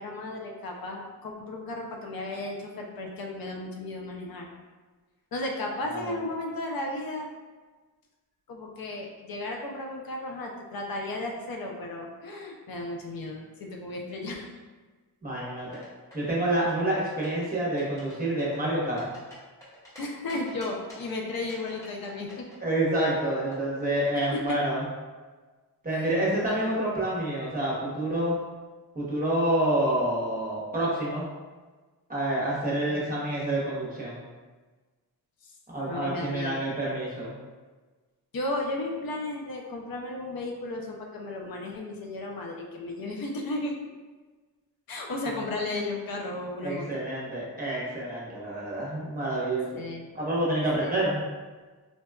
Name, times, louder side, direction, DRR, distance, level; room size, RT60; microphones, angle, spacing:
voice 1, 0.0-4.5 5.3-7.3 8.5-14.5 20.0-22.5 24.3-24.4 26.3-26.8 35.4-35.5 35.9-36.6 38.3-43.7 44.9-46.9 49.8-50.1 50.8-50.9, left 2 dB, 65° left, 0 dB, 0.5 m, -34 dB
voice 2, 5.9-6.2 15.2-15.8 16.1-19.1 22.6-24.8 25.8-28.4 28.9-31.2 32.1-34.2 35.7-37.4 46.6-49.8 50.1-51.2, right 1 dB, 25° right, -6 dB, 0.8 m, -28 dB
sound 1, 15.6-16.3 16.7-17.4 17.8-18.1 18.4-20.0 20.3-21.1 21.5-24.5, left 1 dB, 10° left, 1.1 m, -49 dB
3.9 x 2.2 x 2.3 m, 1.3 s
wide cardioid pair, 135°, 39 cm